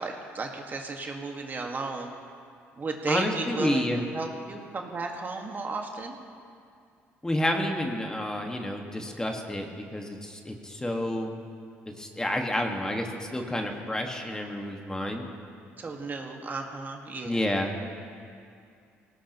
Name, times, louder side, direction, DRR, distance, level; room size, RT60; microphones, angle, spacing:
voice 1, 0.0-2.1 2.8-3.8 4.1-6.2 15.8-17.4, right 3 dB, 35° right, 2 dB, 1.7 m, -34 dB
voice 2, 3.1-4.0 7.2-11.3 12.0-15.2 17.2-17.7, left 1 dB, 15° left, 2 dB, 1.7 m, -29 dB
19.5 x 18.5 x 3.1 m, 2.4 s
supercardioid pair, 80°, 5 cm